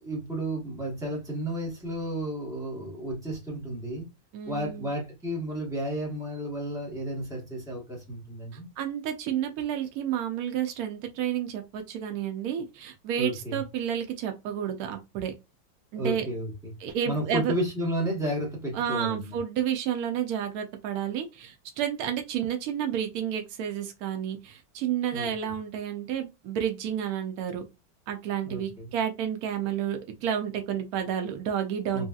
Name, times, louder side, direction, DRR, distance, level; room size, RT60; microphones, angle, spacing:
voice 1, 0.0-4.0 4.5-8.7 13.2-13.6 16.0-16.7 17.0-19.4 25.1-25.5 28.4-28.9 31.9-32.1, right 1 dB, 5° right, 0.5 m, -32 dB
voice 2, 4.3-4.9 8.8-15.3 15.9-16.2 16.8-17.5 18.7-27.7 28.1-32.1, right 9 dB, 80° right, 0.8 m, -30 dB
3.0 x 2.7 x 2.3 m
omnidirectional pair, 2.1 m